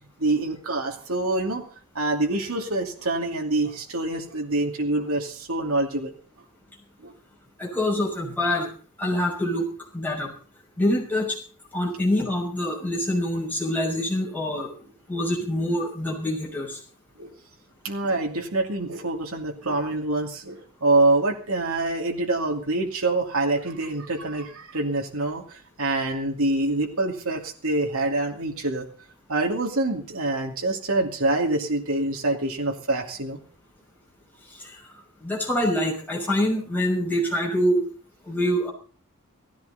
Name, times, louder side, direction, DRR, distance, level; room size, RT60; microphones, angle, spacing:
voice 1, 0.2-1.7 1.9-6.1 7.0-7.1 17.2-17.3 17.8-28.9 29.3-33.4, right 2 dB, 65° right, 2 dB, 2.6 m, -25 dB
voice 2, 7.6-8.7 9.0-9.6 9.9-10.3 10.8-11.4 11.7-14.7 15.1-16.8 35.2-37.9 38.3-38.7, left 1 dB, 10° left, -3 dB, 6.2 m, -25 dB
17.0 x 15.5 x 4.1 m, 0.41 s
head